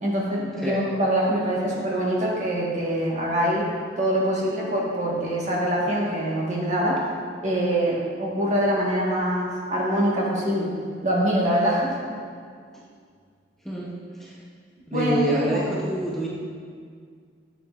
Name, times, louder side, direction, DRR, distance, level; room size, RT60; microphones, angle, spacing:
voice 1, 0.0-3.7 4.0-7.0 7.4-10.7 11.0-12.0 14.9-15.6, right 1 dB, 40° right, -4 dB, 1.4 m, -24 dB
voice 2, 14.9-16.3, equal, ahead, -6 dB, 0.7 m, -27 dB
9.7 x 6.5 x 2.4 m, 2.1 s
head